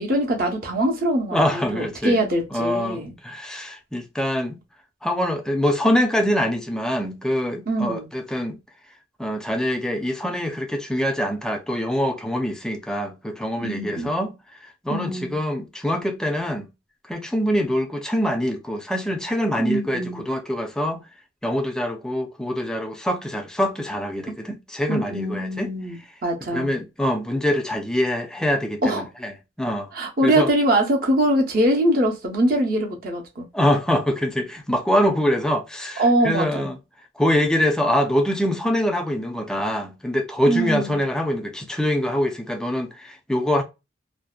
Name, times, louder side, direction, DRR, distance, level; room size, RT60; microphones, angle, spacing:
voice 1, 0.0-3.1 7.7-8.1 13.6-14.1 14.9-15.4 19.6-20.2 24.9-26.8 28.8-29.1 29.9-33.5 36.0-36.7 40.5-41.0, right 1 dB, 50° right, 0.7 m, -23 dB
voice 2, 1.3-2.2 2.5-4.6 5.0-8.6 9.2-14.3 14.8-16.7 17.1-21.0 21.4-25.7 26.5-29.3 29.6-29.9 30.2-30.5 33.5-36.8 37.2-43.6, equal, 5° left, 0.3 m, -24 dB
2.6 x 2.1 x 2.3 m
head